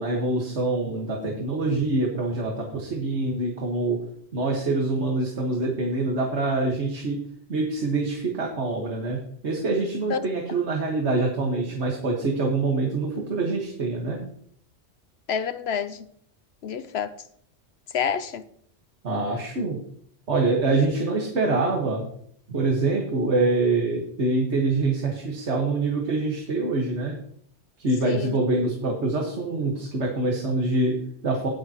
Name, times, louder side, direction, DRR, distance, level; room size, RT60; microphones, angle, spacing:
voice 1, 0.0-4.0 4.3-7.2 7.5-14.2 19.0-19.8 20.3-22.0 22.5-27.2 27.8-31.5, right 3 dB, 70° right, 1.8 m, -25 dB
voice 2, 15.3-16.1 16.6-17.1 17.9-18.4 20.7-20.8 28.0-28.4, left 7 dB, 65° left, 0.8 m, -28 dB
18.0 x 6.7 x 2.9 m
omnidirectional pair, 1.2 m